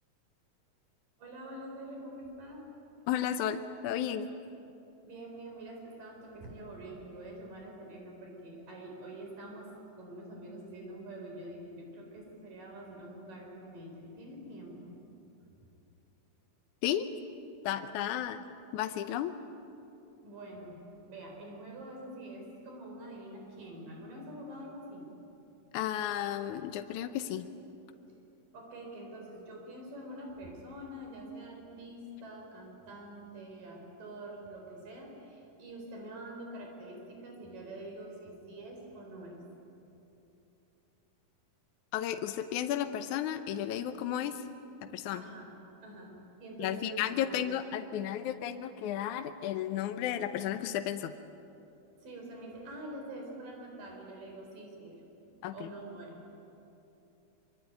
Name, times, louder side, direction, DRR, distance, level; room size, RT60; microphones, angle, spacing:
voice 1, 1.2-2.7 5.0-9.7 10.0-14.9 20.2-25.1 28.5-39.4 45.1-45.5 45.8-47.6 52.0-55.0 55.3-56.2, right 1 dB, 80° right, 1 dB, 5.8 m, -46 dB
voice 2, 3.1-4.3 16.8-17.1 17.6-18.4 18.7-19.3 25.7-27.5 41.9-44.3 44.9-45.2 46.6-51.1 55.4-55.7, left 10 dB, 75° left, 8 dB, 2.1 m, -33 dB
25.0 x 23.5 x 9.3 m, 2.8 s
omnidirectional pair, 3.8 m